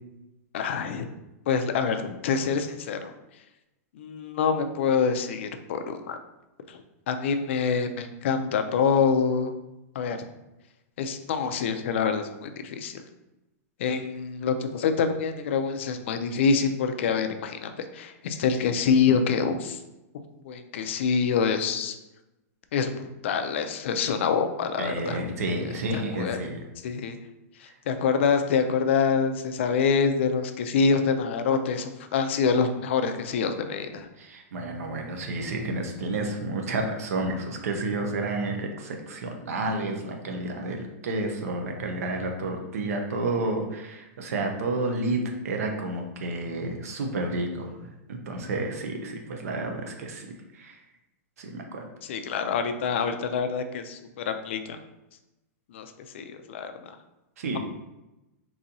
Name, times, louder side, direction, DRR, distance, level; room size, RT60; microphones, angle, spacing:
voice 1, 0.5-1.1 1.5-3.1 4.0-6.2 6.7-6.8 7.1-9.5 9.9-10.2 11.0-13.0 13.8-19.8 20.4-21.9 22.7-25.3 25.9-26.4 26.8-27.2 27.6-34.1 52.0-54.8 55.7-55.9 56.1-57.0, left 5 dB, 50° left, 7 dB, 0.3 m, -26 dB
voice 2, 24.8-26.6 27.6-27.8 34.2-50.3 50.5-50.8 51.4-51.9 57.4-57.6, right 2 dB, 70° right, 3 dB, 0.7 m, -30 dB
4.0 x 2.7 x 2.6 m, 0.97 s
supercardioid pair, 175°, 8 cm